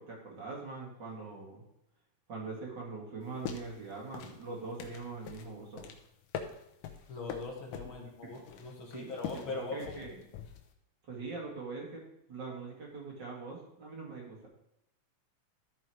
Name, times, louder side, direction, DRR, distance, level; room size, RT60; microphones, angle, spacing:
voice 1, 0.0-1.6 2.3-5.9 8.9-9.1 9.5-10.2 11.1-12.0 12.3-14.5, right 4 dB, 40° right, -2 dB, 2.1 m, -42 dB
sound 1, 3.2-10.7, left 8 dB, 80° left, 2.4 m, -44 dB
voice 2, 7.1-10.0, left 3 dB, 45° left, 0 dB, 1.8 m, -41 dB
13.5 x 4.9 x 4.6 m, 0.84 s
omnidirectional pair, 3.9 m